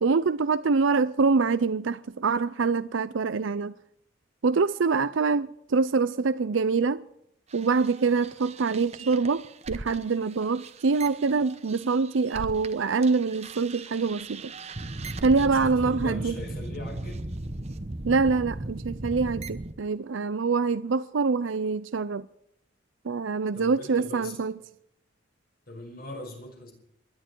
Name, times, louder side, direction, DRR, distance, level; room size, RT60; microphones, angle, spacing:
voice 1, 0.0-3.7 4.4-7.0 7.5-14.5 15.2-16.4 18.0-22.3 23.0-24.5, right 4 dB, 75° right, 0.5 m, -25 dB
sound 1, 7.5-12.7 13.0-19.7, right 2 dB, 30° right, 1.0 m, -38 dB
voice 2, 15.4-17.2 23.5-24.4 25.7-26.7, left 1 dB, 45° left, 5.6 m, -40 dB
27.0 x 11.5 x 4.6 m
head